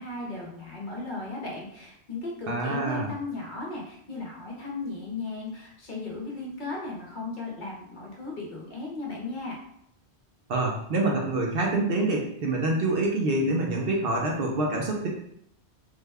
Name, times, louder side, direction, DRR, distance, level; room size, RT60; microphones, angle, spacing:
voice 1, 0.0-9.6, left 3 dB, 50° left, -2 dB, 0.9 m, -36 dB
voice 2, 2.5-3.1 10.5-15.1, right 2 dB, 65° right, 0 dB, 0.8 m, -26 dB
3.4 x 2.1 x 3.3 m, 0.70 s
omnidirectional pair, 1.1 m